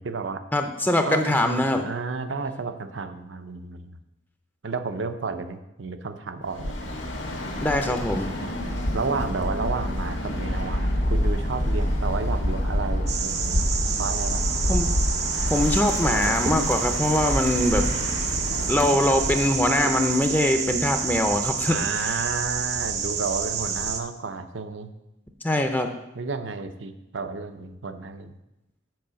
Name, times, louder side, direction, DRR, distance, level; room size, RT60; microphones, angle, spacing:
voice 1, 0.0-0.4 1.0-4.0 4.6-6.7 8.4-8.5 8.9-13.7 14.0-14.4 17.7-19.0 21.7-24.9 26.1-28.3, right 4 dB, 75° right, 9 dB, 0.7 m, -32 dB
voice 2, 0.5-1.8 7.6-8.3 14.7-14.9 15.5-17.9 18.7-22.2 25.4-25.9, left 1 dB, 10° left, 5 dB, 0.5 m, -23 dB
Bird, 6.5-19.6, left 1 dB, 75° left, 1.7 m, -27 dB
sound 1, 13.1-24.0, right 6 dB, 35° right, 0.6 m, -28 dB
7.7 x 4.7 x 6.9 m, 0.91 s
head